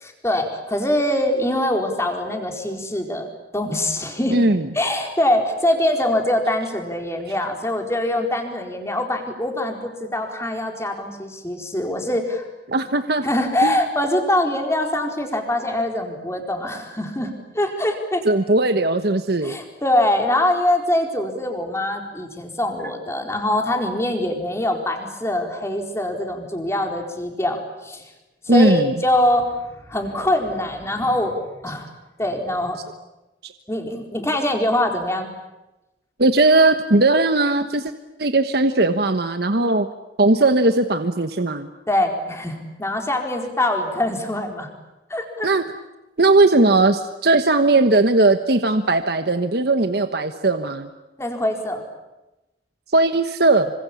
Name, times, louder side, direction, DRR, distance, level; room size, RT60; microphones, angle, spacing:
voice 1, 0.0-3.3 3.5-4.4 4.7-12.5 13.2-18.2 19.4-28.0 28.4-31.4 31.6-31.9 32.2-32.8 33.7-35.3 41.9-44.7 45.1-45.5 51.2-51.8, left 1 dB, 15° left, 3 dB, 4.4 m, -23 dB
voice 2, 4.3-4.7 12.7-13.2 13.6-13.7 18.2-19.6 28.5-28.9 36.2-37.9 38.2-39.9 40.2-41.7 45.4-45.6 46.2-50.9 52.9-53.7, right 2 dB, 60° right, 8 dB, 1.3 m, -18 dB
27.0 x 25.5 x 8.6 m, 1.0 s
head